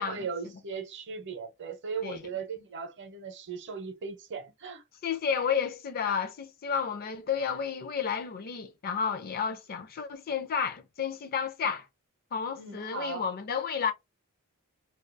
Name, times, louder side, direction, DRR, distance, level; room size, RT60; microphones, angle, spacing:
voice 1, 0.0-4.8 12.6-13.2, right 5 dB, 55° right, 0.7 m, -38 dB
voice 2, 5.0-11.9 12.3-13.9, left 6 dB, 45° left, 0.4 m, -31 dB
2.3 x 2.2 x 2.5 m
head